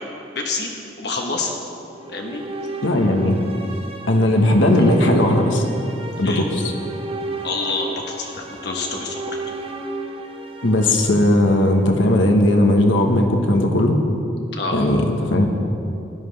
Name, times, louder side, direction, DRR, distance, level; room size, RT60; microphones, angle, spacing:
voice 1, 0.3-0.7 1.0-1.6 2.1-2.4 6.2-6.4 7.4-9.4 14.5-14.9, left 3 dB, 60° left, 0 dB, 1.1 m, -27 dB
sound 1, 1.9-12.1, right 2 dB, 30° right, 0.9 m, -33 dB
voice 2, 2.8-3.4 4.1-5.6 6.2-6.7 10.6-14.0 14.7-15.5, left 1 dB, 85° left, 3 dB, 1.3 m, -17 dB
16.0 x 11.0 x 3.4 m, 2.7 s
head